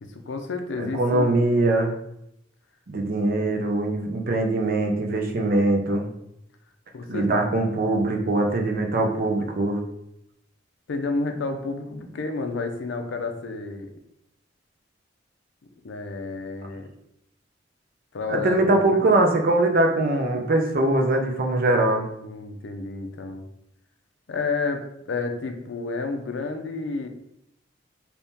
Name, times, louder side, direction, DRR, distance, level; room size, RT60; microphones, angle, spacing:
voice 1, 0.0-1.3 6.9-7.3 10.9-13.9 15.8-16.9 18.1-19.0 22.2-23.4 24.3-27.1, left 3 dB, 75° left, 5 dB, 0.5 m, -30 dB
voice 2, 0.8-1.9 2.9-6.1 7.1-9.8 18.3-22.1, right 2 dB, 50° right, 3 dB, 0.5 m, -22 dB
3.5 x 2.8 x 2.7 m, 0.78 s
head